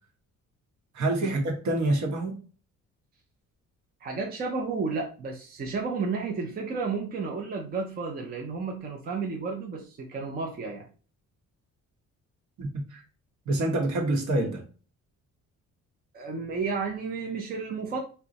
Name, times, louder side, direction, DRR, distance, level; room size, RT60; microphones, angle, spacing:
voice 1, 0.9-2.4 12.6-13.0 13.5-14.6, right 2 dB, 65° right, 2 dB, 1.0 m, -27 dB
voice 2, 4.0-10.9 16.1-18.0, right 4 dB, 30° right, 1 dB, 0.5 m, -32 dB
2.6 x 2.2 x 3.9 m, 0.37 s
cardioid pair, 175°, 31 cm